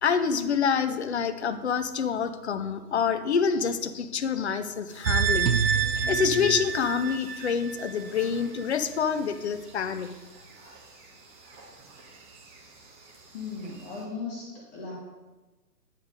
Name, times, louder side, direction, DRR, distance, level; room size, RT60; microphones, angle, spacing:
voice 1, 0.0-10.1, left 6 dB, 45° left, 11 dB, 0.6 m, -27 dB
sound 1, 4.9-14.0, right 2 dB, 10° right, 0.9 m, -43 dB
sound 2, 5.0-8.3 8.6-8.7, right 6 dB, 80° right, 0.7 m, -27 dB
voice 2, 13.3-14.9, left 4 dB, 25° left, -4 dB, 1.4 m, -37 dB
10.0 x 4.9 x 5.1 m, 1.2 s
figure-of-eight pair, 130°, 48 cm